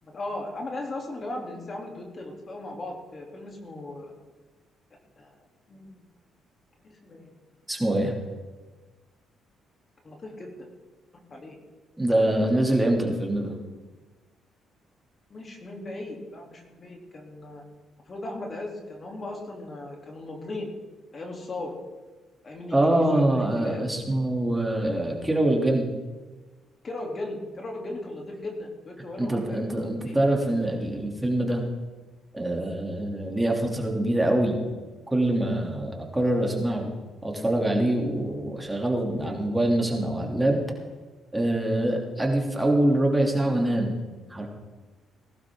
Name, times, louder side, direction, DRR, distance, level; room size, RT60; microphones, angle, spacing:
voice 1, 0.0-4.1 5.2-5.3 5.7-6.0 6.8-7.3 10.0-10.5 11.3-11.6 15.3-17.6 18.1-20.7 21.1-21.7 22.4-23.8 26.8-30.2, left 2 dB, 40° left, 1 dB, 3.2 m, -37 dB
voice 2, 7.7-8.1 12.0-13.5 22.7-25.9 29.2-31.6 32.3-34.6 35.1-36.9 37.2-40.6 41.3-43.9 44.3-44.5, right 1 dB, 10° right, 0 dB, 3.0 m, -24 dB
19.5 x 12.0 x 3.8 m, 1.3 s
cardioid pair, 80°, 0 cm